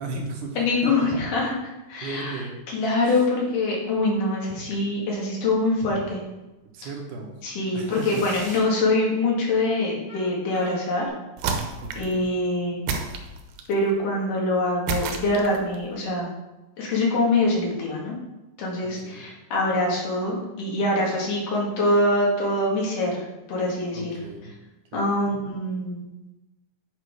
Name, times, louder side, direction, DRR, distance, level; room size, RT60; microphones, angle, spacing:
voice 1, 0.0-0.6 0.8-1.1 2.0-2.5 6.7-7.3 7.7-8.2 11.8-12.3 19.0-19.3 23.9-24.5 24.9-25.4, right 3 dB, 70° right, 2 dB, 2.4 m, -36 dB
voice 2, 0.6-2.4 2.7-6.2 7.4-11.1 12.0-12.8 13.7-16.3 16.8-18.2 18.6-24.1 24.9-26.0, left 2 dB, 70° left, -3 dB, 3.5 m, -24 dB
sound 1, 5.5-6.1 7.8-8.7 10.1-11.1, equal, 5° right, 1.7 m, -44 dB
sound 2, 11.4-12.2 12.9-13.8 14.9-15.8, right 4 dB, 85° right, 2.6 m, -29 dB
8.0 x 5.6 x 4.8 m, 1.0 s
omnidirectional pair, 3.9 m